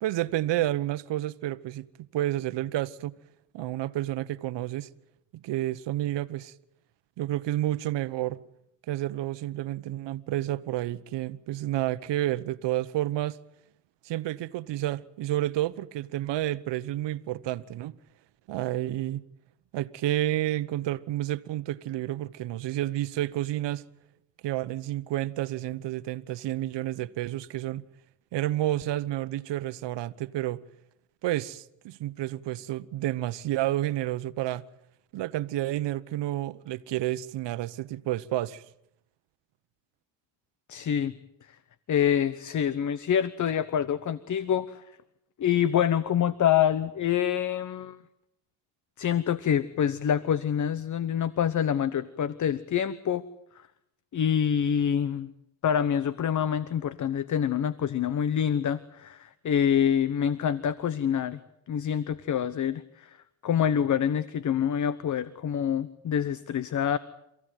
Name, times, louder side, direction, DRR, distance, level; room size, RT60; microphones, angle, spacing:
voice 1, 0.0-1.9 2.1-3.1 3.5-4.9 5.3-6.5 7.2-8.4 8.9-13.4 14.0-18.0 18.5-19.2 19.7-23.8 24.4-27.8 28.3-30.6 31.2-34.7 35.1-38.6, right 14 dB, 60° right, 1.2 m, -30 dB
voice 2, 40.7-41.1 41.9-44.8 45.4-48.0 49.0-53.2 54.1-55.3 55.6-61.4 61.7-63.2 63.4-67.0, left 9 dB, 35° left, 1.1 m, -26 dB
27.5 x 16.0 x 9.3 m
supercardioid pair, 95°, 48 cm